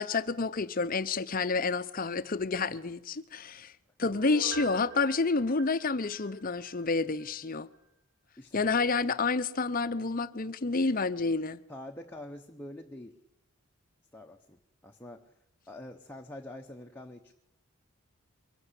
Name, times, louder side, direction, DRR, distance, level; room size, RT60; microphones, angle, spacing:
voice 1, 0.0-3.7 4.0-7.7 8.5-11.6, left 4 dB, 40° left, 0.7 m, -29 dB
Piano, 4.1-6.8 7.2-7.3, right 4 dB, 65° right, 5.2 m, -44 dB
voice 2, 11.7-13.2 14.1-15.3 15.7-17.3, left 1 dB, 10° left, 1.0 m, -45 dB
23.5 x 16.0 x 8.2 m
head